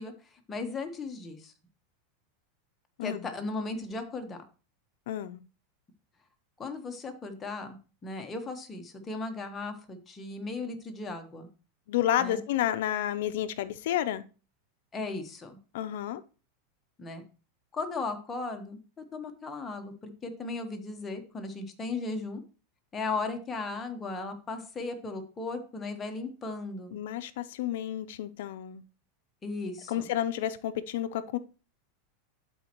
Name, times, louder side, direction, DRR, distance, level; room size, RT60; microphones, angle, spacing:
voice 1, 0.0-1.5 3.0-4.4 6.6-11.5 12.2-12.4 14.9-15.6 17.0-17.2 17.7-18.8 19.1-22.4 22.9-26.9 29.4-30.0, left 3 dB, 20° left, 1.1 m, -36 dB
voice 2, 5.1-5.4 11.9-14.2 15.7-16.2 26.9-28.8 29.9-31.4, left 11 dB, 70° left, 0.5 m, -30 dB
11.5 x 4.3 x 3.0 m
supercardioid pair, 140°, 0 cm